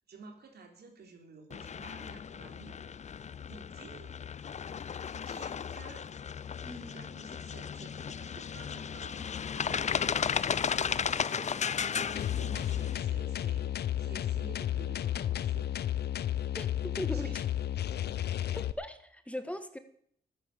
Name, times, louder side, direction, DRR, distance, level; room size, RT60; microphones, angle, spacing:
voice 1, 0.1-3.0 3.5-4.1 5.2-6.1 6.9-9.2 9.5-10.3 10.9-15.8 17.1-17.4, right 4 dB, 75° right, 4 dB, 3.3 m, -52 dB
sound 1, 1.5-13.0, left 7 dB, 45° left, 0.5 m, -35 dB
voice 2, 6.6-7.0 16.5-17.4 18.5-19.8, left 1 dB, 5° left, 9 dB, 1.4 m, -39 dB
sound 2, 12.2-18.7, left 11 dB, 80° left, 0.6 m, -32 dB
13.5 x 9.9 x 6.7 m, 0.65 s
cardioid pair, 70°, 17 cm